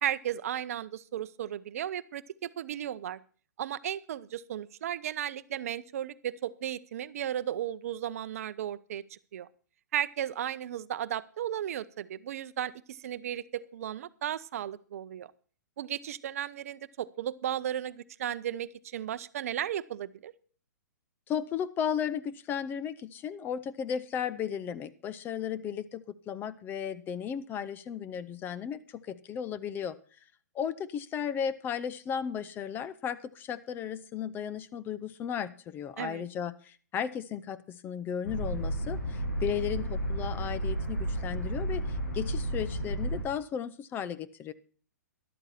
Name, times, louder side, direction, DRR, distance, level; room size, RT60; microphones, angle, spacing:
voice 1, 0.0-3.2 3.6-9.5 9.9-15.3 15.8-20.3 36.0-36.2, right 11 dB, 55° right, 15 dB, 0.7 m, -35 dB
voice 2, 21.3-29.9 30.5-44.5, left 8 dB, 20° left, 13 dB, 0.7 m, -35 dB
sound 1, 38.2-43.2, right 1 dB, 70° left, 6.9 m, -32 dB
13.0 x 12.0 x 4.3 m, 0.41 s
figure-of-eight pair, 120°, 10 cm